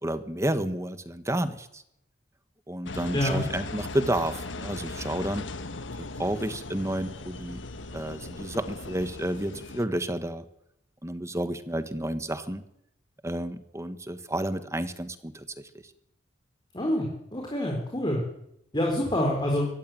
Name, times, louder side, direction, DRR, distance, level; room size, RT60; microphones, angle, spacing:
voice 1, 0.0-1.8 2.7-5.5 6.0-7.6 7.9-10.4 11.0-12.6 13.2-15.7, right 1 dB, 15° right, 11 dB, 1.5 m, -31 dB
Engine, 2.8-9.8, left 2 dB, 90° left, 1.5 m, -38 dB
voice 2, 16.7-18.2 18.7-19.7, left 1 dB, 25° left, 0 dB, 4.3 m, -26 dB
24.0 x 15.5 x 9.3 m, 0.80 s
head